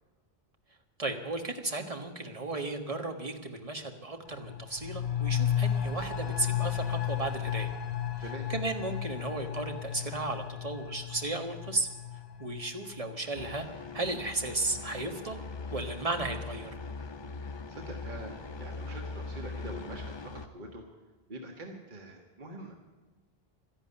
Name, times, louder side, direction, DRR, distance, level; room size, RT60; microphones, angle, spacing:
voice 1, 1.0-7.7 8.5-11.9 12.4-13.7 13.9-15.4 15.7-16.7, right 2 dB, 35° right, 5 dB, 1.5 m, -34 dB
sound 1, 4.3-13.7 14.0-14.1, left 9 dB, 55° left, 1.1 m, -34 dB
sound 2, 13.4-20.5, left 3 dB, 30° left, 0.6 m, -41 dB
voice 2, 17.7-20.8 21.3-22.8, right 1 dB, 50° right, 2 dB, 1.6 m, -44 dB
12.5 x 11.5 x 9.6 m, 1.2 s
omnidirectional pair, 1.0 m